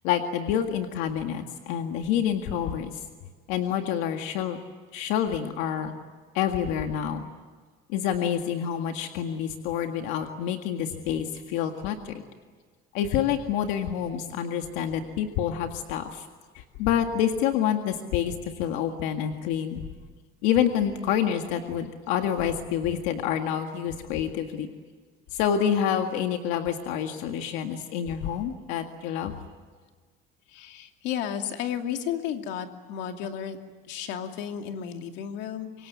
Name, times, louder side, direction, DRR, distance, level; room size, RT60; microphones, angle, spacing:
voice 1, 0.0-2.9 3.5-4.6 4.9-5.9 6.3-7.2 7.9-12.2 12.9-16.3 16.6-19.9 20.4-24.7 25.3-29.3, left 9 dB, 90° left, 5 dB, 1.9 m, -27 dB
voice 2, 30.5-33.6 33.9-35.9, left 9 dB, 65° left, 5 dB, 2.6 m, -33 dB
26.0 x 23.5 x 9.5 m, 1.5 s
cardioid pair, 165°, 19 cm